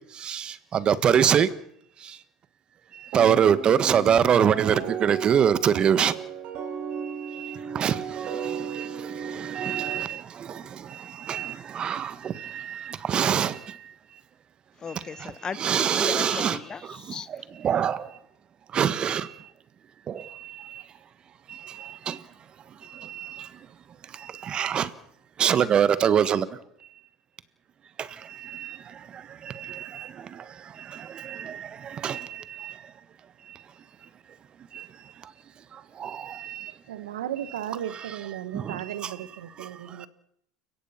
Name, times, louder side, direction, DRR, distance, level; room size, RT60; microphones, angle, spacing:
voice 1, 0.2-1.5 3.1-6.1 7.4-8.0 8.7-8.9 9.3-10.2 11.3-13.5 15.6-16.6 17.6-18.0 18.7-19.3 22.1-22.2 23.1-23.3 24.5-24.9 25.4-26.5 28.5-28.7 29.6-30.0 31.2-31.7 32.0-32.3 32.6-32.7 36.0-36.6 38.5-38.8, right 8 dB, 40° right, 14 dB, 1.5 m, -23 dB
sound 1, 3.1-10.0, right 6 dB, 60° right, 4.9 m, -35 dB
voice 2, 14.8-15.6 15.9-17.3, left 6 dB, 30° left, 16 dB, 1.2 m, -36 dB
voice 3, 36.9-40.1, right 11 dB, 85° right, 13 dB, 1.3 m, -35 dB
29.5 x 17.0 x 5.9 m, 0.73 s
hypercardioid pair, 80°, 2 cm